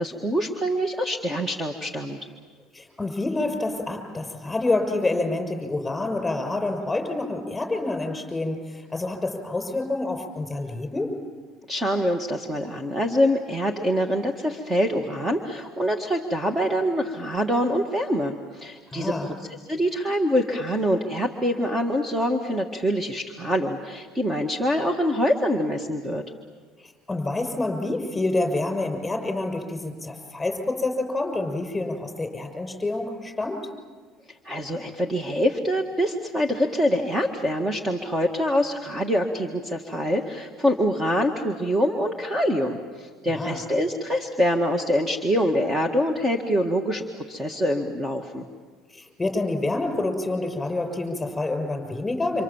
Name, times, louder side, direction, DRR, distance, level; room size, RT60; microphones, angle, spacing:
voice 1, 0.0-2.2 11.7-19.3 19.7-26.2 34.4-48.5, equal, 15° right, 4 dB, 1.8 m, -25 dB
voice 2, 2.7-11.1 18.9-19.3 26.8-33.6 43.3-43.6 48.9-52.4, left 2 dB, 10° left, 5 dB, 6.5 m, -27 dB
29.5 x 27.0 x 7.4 m, 1.5 s
cardioid pair, 130°, 0 cm